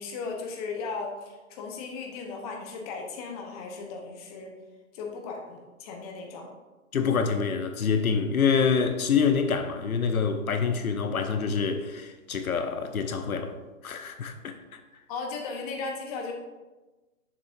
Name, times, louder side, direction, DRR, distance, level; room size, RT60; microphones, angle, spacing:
voice 1, 0.0-4.5 4.9-6.5 15.1-16.3, left 4 dB, 25° left, 0.9 m, -36 dB
voice 2, 6.9-13.5 13.8-14.8, left 6 dB, 85° left, 0.8 m, -26 dB
7.1 x 6.3 x 2.6 m
hypercardioid pair, 140°, 42 cm